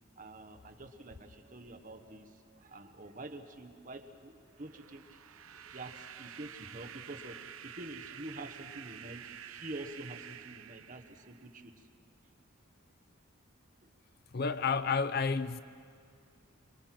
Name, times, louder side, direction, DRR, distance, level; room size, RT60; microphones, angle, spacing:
voice 1, 0.2-5.2 5.5-11.7 13.8-13.9, right 2 dB, 40° right, 1.2 m, -47 dB
sound 1, 4.5-11.6, right 9 dB, 85° right, 0.7 m, -49 dB
voice 2, 14.3-15.6, left 5 dB, 50° left, 0.5 m, -30 dB
25.5 x 22.5 x 6.0 m
head